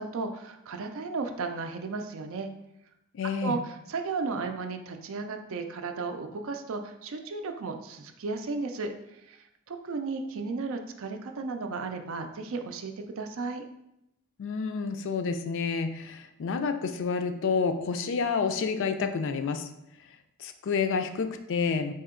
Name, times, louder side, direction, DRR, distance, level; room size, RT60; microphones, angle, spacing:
voice 1, 0.0-2.5 3.4-13.6, right 4 dB, 65° right, 6 dB, 0.4 m, -34 dB
voice 2, 3.1-3.6 14.4-19.7 20.4-21.9, left 5 dB, 60° left, 8 dB, 0.4 m, -29 dB
4.2 x 2.8 x 3.7 m, 0.83 s
head